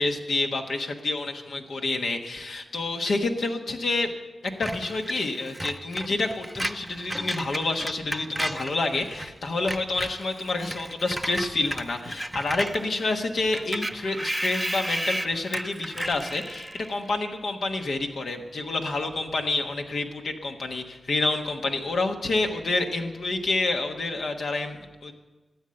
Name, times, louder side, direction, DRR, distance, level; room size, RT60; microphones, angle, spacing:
voice 1, 0.0-4.1 4.4-25.1, left 2 dB, 80° left, 3 dB, 1.3 m, -28 dB
Screech, 4.6-9.3 9.6-17.0, right 1 dB, 10° right, 0.4 m, -34 dB
12.5 x 8.3 x 7.7 m, 1.2 s
cardioid pair, 45°, 0 cm